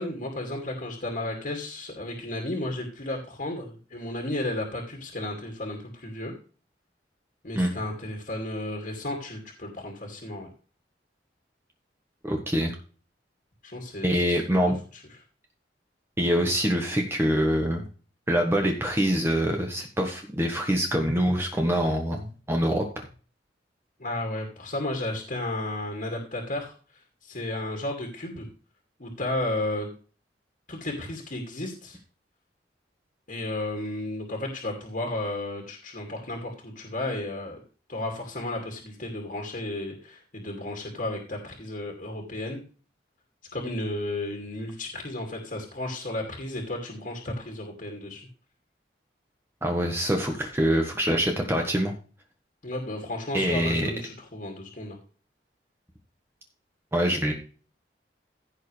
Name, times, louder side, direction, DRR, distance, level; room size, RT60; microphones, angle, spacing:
voice 1, 0.0-6.3 7.4-10.5 13.6-14.7 24.0-26.7 27.2-28.4 29.0-29.9 30.7-32.0 33.3-37.6 37.9-42.6 43.5-48.2 52.6-55.0, left 1 dB, 50° left, 1 dB, 2.5 m, -33 dB
voice 2, 12.2-12.7 14.0-14.8 16.2-17.9 18.3-23.1 49.6-51.9 53.3-53.9 56.9-57.3, equal, 15° right, 2 dB, 1.4 m, -25 dB
15.5 x 6.6 x 3.3 m, 0.38 s
head